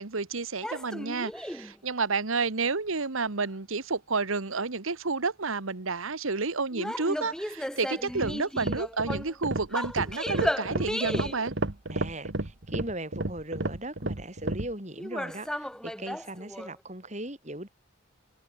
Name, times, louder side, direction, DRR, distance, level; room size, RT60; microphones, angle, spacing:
voice 1, 0.0-11.5, right 4 dB, 80° right, 1.4 m, -30 dB
sound 1, 0.6-1.7 6.7-9.3 9.7-11.5 15.0-16.7, equal, 5° left, 1.9 m, -34 dB
sound 2, 8.1-14.7, right 2 dB, 55° right, 1.6 m, -32 dB
voice 2, 11.9-17.7, right 1 dB, 35° right, 5.7 m, -39 dB
head